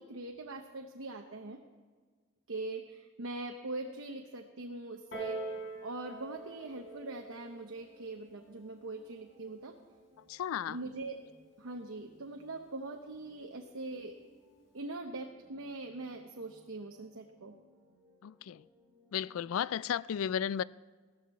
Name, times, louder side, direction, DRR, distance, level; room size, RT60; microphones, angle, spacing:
voice 1, 0.0-1.6 2.5-9.8 10.7-11.2 11.6-14.2 14.7-17.6, right 2 dB, 90° right, 0.9 m, -42 dB
Piano, 5.1-10.3 11.1-11.2, right 2 dB, 65° left, 3.7 m, -45 dB
sound 1, 5.2-19.7, left 1 dB, 5° right, 5.4 m, -66 dB
voice 2, 10.3-10.8 18.2-18.6 19.1-20.6, left 8 dB, 90° left, 0.3 m, -34 dB
16.0 x 13.5 x 4.2 m
head